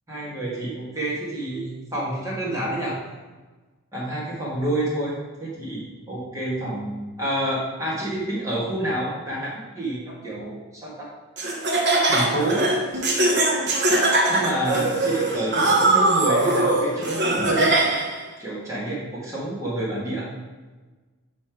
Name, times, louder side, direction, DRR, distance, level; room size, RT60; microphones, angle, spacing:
voice 1, 0.1-3.0 3.9-11.1 12.1-12.7 14.3-17.8 18.4-20.3, right 1 dB, 15° right, -7 dB, 1.8 m, -28 dB
Laughter, 11.4-18.2, right 2 dB, 50° right, 0.9 m, -21 dB
5.5 x 4.3 x 4.6 m, 1.3 s
head